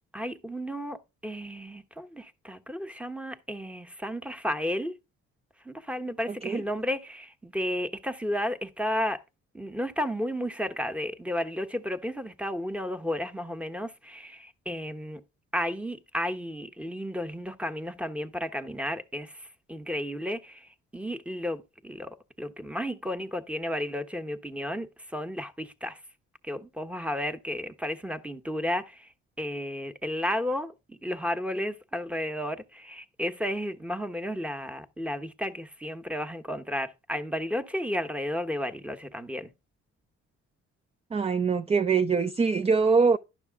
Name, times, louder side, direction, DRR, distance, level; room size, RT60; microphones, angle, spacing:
voice 1, 0.1-4.9 5.6-9.2 9.5-15.2 15.5-26.0 26.4-29.1 29.4-39.5, equal, 5° right, 1.1 m, -33 dB
voice 2, 6.3-6.6 41.1-43.2, right 5 dB, 20° right, 0.4 m, -23 dB
11.0 x 6.2 x 3.6 m
cardioid pair, 90°, 30 cm